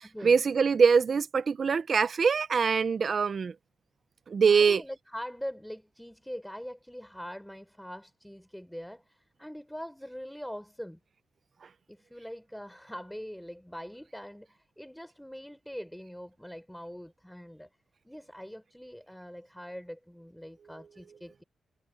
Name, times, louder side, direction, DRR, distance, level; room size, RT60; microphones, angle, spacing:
voice 1, 0.2-3.5 4.3-4.8, right 5 dB, 45° right, 0.7 m, -23 dB
voice 2, 4.5-11.0 11.9-17.7 18.0-21.4, equal, 5° left, 4.8 m, -43 dB
wide cardioid pair, 125°, 0 cm